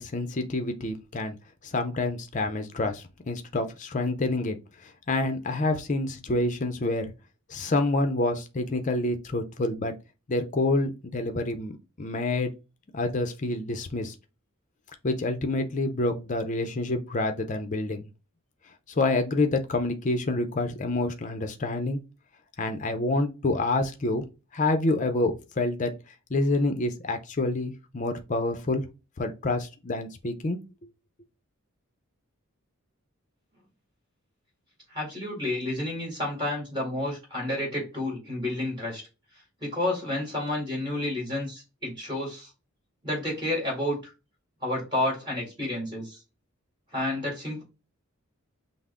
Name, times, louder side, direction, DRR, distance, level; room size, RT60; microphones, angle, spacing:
voice 1, 0.0-1.3 1.6-4.6 4.8-7.1 7.5-9.9 10.3-11.7 12.0-12.5 12.9-14.1 15.0-18.1 19.0-22.0 22.6-24.2 24.5-25.9 26.3-28.8 29.2-30.6, left 2 dB, 35° left, 0.6 m, -27 dB
voice 2, 34.9-39.0 39.6-42.5 43.0-44.1 44.6-46.2 46.9-47.6, left 1 dB, 20° right, 2.5 m, -30 dB
5.8 x 2.1 x 3.6 m
head